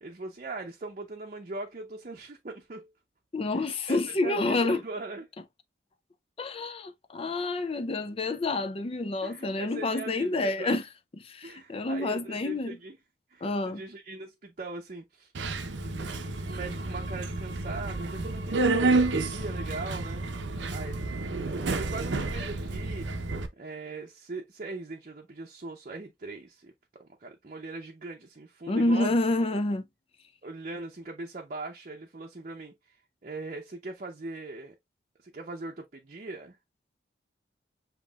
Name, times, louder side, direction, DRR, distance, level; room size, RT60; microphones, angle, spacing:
voice 1, 0.0-2.9 3.9-5.3 9.2-10.8 11.4-13.0 13.3-15.3 16.4-20.2 20.7-23.1 23.6-26.7 27.0-29.1 30.4-33.0 33.2-34.7 35.2-36.6, right 3 dB, 45° right, 0.7 m, -40 dB
voice 2, 3.3-4.8 6.4-10.9 11.2-12.8 13.4-13.8 28.7-29.8, left 2 dB, 35° left, 0.5 m, -28 dB
Subway metro underground, 15.3-23.5, right 3 dB, 90° right, 0.7 m, -30 dB
7.2 x 3.0 x 2.3 m
head